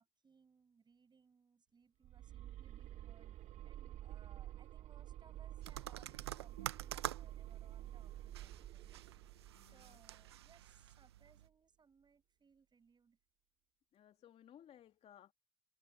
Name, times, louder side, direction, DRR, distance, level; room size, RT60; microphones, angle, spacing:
voice 1, 0.0-13.2, right 5 dB, 35° right, 6.7 m, -68 dB
sound 1, 2.0-10.9, right 13 dB, 60° right, 2.1 m, -50 dB
sound 2, 5.6-11.5, right 13 dB, 90° right, 0.9 m, -48 dB
voice 2, 9.5-10.0 13.9-15.3, left 10 dB, 55° left, 2.6 m, -61 dB
hypercardioid pair, 60°, 13 cm